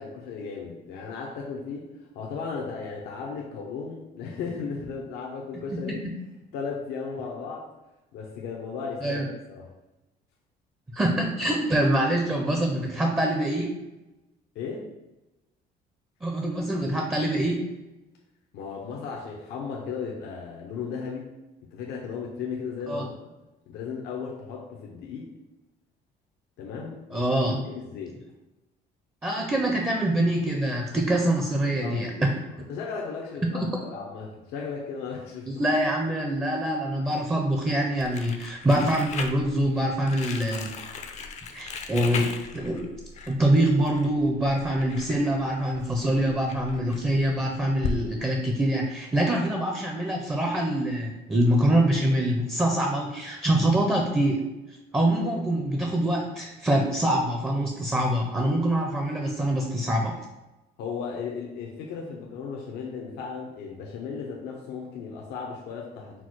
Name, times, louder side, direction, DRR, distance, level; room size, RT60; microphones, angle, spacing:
voice 1, 0.0-6.0 6.5-7.7 8.1-9.7 14.5-14.9 18.5-21.3 21.7-23.3 23.7-25.3 26.6-28.2 31.8-32.3 32.7-35.6 55.2-55.3 60.8-66.2, left 5 dB, 80° left, -2 dB, 0.7 m, -36 dB
voice 2, 10.9-13.7 16.2-17.6 22.9-23.0 27.1-27.6 29.2-32.3 35.5-40.7 41.5-42.9 43.3-54.4 54.9-60.2, right 1 dB, 10° right, 1 dB, 0.5 m, -25 dB
Crumpling crinkling, 38.0-48.0, left 5 dB, 45° left, 0.5 m, -38 dB
4.5 x 2.0 x 4.4 m, 1.0 s
cardioid pair, 110°, 17 cm